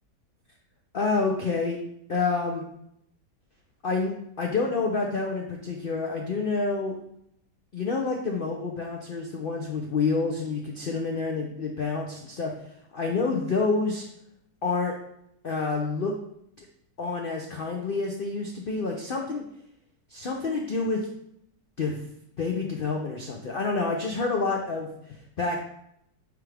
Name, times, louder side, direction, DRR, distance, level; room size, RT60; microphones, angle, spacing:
voice 1, 0.9-1.8 2.1-2.6 3.8-7.0 7.7-14.1 14.6-14.9 15.4-16.1 16.6-16.7 17.0-19.4 20.1-21.1 21.8-22.0 22.4-25.6, left 4 dB, 90° left, 1 dB, 0.4 m, -28 dB
9.3 x 3.5 x 3.4 m, 0.75 s
omnidirectional pair, 1.9 m